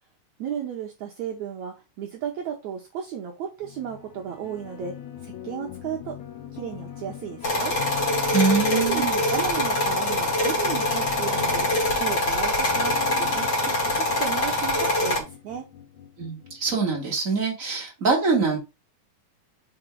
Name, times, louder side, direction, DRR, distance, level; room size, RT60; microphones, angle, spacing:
voice 1, 0.4-5.0 5.2-6.2 6.5-7.8 8.9-11.7 12.0-15.7, right 8 dB, 70° right, 1 dB, 1.9 m, -34 dB
sound 1, 3.6-17.0, left 10 dB, 70° left, 2.0 m, -40 dB
sound 2, 7.4-15.2, left 1 dB, 35° left, 2.0 m, -24 dB
voice 2, 8.3-9.1 16.2-18.6, right 4 dB, 40° right, 0 dB, 1.2 m, -24 dB
5.0 x 5.0 x 4.6 m, 0.25 s
omnidirectional pair, 4.2 m